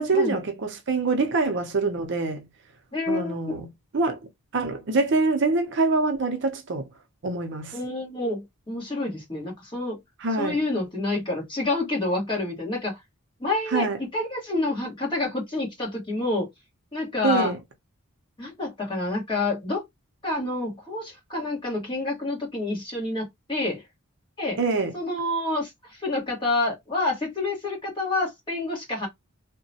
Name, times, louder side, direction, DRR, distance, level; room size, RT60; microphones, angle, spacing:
voice 1, 0.0-2.5 3.1-3.7 3.9-4.2 4.5-6.9 7.2-7.8 10.2-10.6 13.7-14.0 17.2-17.6 24.6-25.0, right 3 dB, 55° right, 0.5 m, -25 dB
voice 2, 2.9-3.6 7.7-10.0 10.4-13.0 13.4-13.9 14.1-16.5 16.9-17.5 18.4-19.8 20.2-23.8 24.4-24.6 24.9-29.1, left 2 dB, 20° left, 1.3 m, -28 dB
2.9 x 2.1 x 2.7 m
head